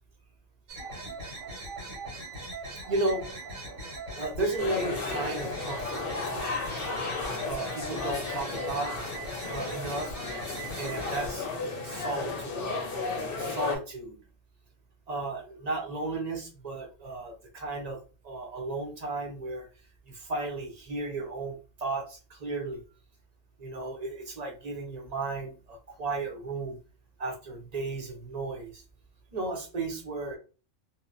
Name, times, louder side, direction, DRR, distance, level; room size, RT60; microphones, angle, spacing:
sound 1, 0.7-11.3, right 2 dB, 85° right, 1.5 m, -40 dB
voice 1, 2.9-3.3 4.2-6.6 7.4-9.0 9.5-10.1 10.7-11.5 11.8-12.9 13.4-14.2 15.1-18.0 18.2-19.7 20.1-22.8 23.6-26.8 27.2-28.8 29.3-30.4, right 2 dB, 40° right, 1 dB, 0.6 m, -34 dB
sound 2, 4.6-13.8, left 4 dB, 55° left, 0.7 m, -34 dB
2.7 x 2.1 x 2.5 m, 0.34 s
omnidirectional pair, 1.4 m